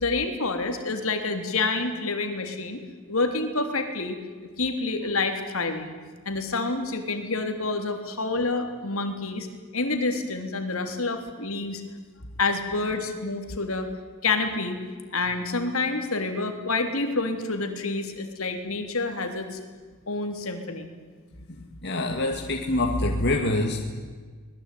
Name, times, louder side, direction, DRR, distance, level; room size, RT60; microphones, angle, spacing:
voice 1, 0.0-2.8 3.1-4.2 4.6-5.9 6.3-9.5 9.7-11.8 12.4-13.9 14.2-14.8 15.1-19.6 20.1-20.9, left 3 dB, 70° left, 6 dB, 3.4 m, -28 dB
voice 2, 21.8-23.8, left 2 dB, 50° left, 2 dB, 2.3 m, -25 dB
24.5 x 21.0 x 9.4 m, 1.5 s
head